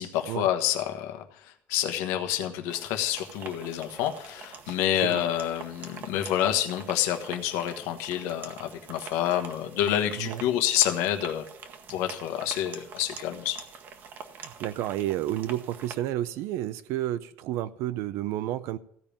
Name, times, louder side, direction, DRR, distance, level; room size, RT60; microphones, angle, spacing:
voice 1, 0.0-11.5 11.9-13.6, left 11 dB, 85° left, 1.3 m, -28 dB
sound 1, 2.7-16.0, right 6 dB, 40° right, 1.1 m, -45 dB
voice 2, 14.4-18.8, right 13 dB, 70° right, 0.5 m, -31 dB
15.0 x 5.3 x 8.7 m
cardioid pair, 165°, 5 cm